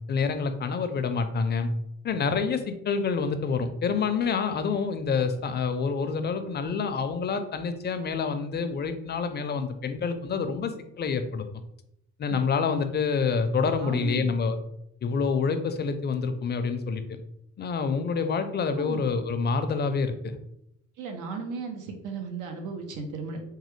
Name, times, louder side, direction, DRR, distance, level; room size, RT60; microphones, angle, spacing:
voice 1, 0.1-1.7 2.0-10.7 11.0-11.5 12.2-14.6 15.0-17.2 17.6-20.4, left 5 dB, 35° left, 9 dB, 0.4 m, -27 dB
voice 2, 13.8-14.3 18.8-19.1 21.0-23.4, right 4 dB, 90° right, 4 dB, 0.7 m, -35 dB
3.1 x 2.2 x 3.1 m, 0.80 s
cardioid pair, 90°, 30 cm